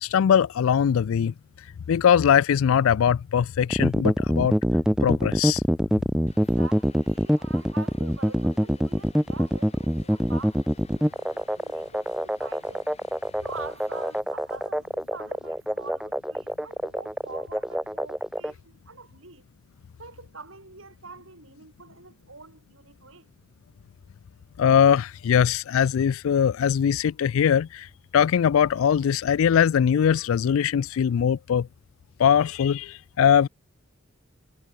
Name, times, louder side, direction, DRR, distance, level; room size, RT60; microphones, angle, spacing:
voice 1, 0.0-1.3 1.9-4.6 5.0-5.6 24.6-27.9 28.1-31.7 32.2-33.5, left 8 dB, 80° left, 0.3 m, -21 dB
sound 1, 3.7-18.5, equal, 5° right, 1.4 m, -25 dB
Vehicle, 6.3-14.2, left 4 dB, 30° left, 7.8 m, -54 dB
voice 2, 6.3-10.6 10.9-12.9 13.4-19.4 20.0-23.3, right 4 dB, 75° right, 4.2 m, -45 dB
head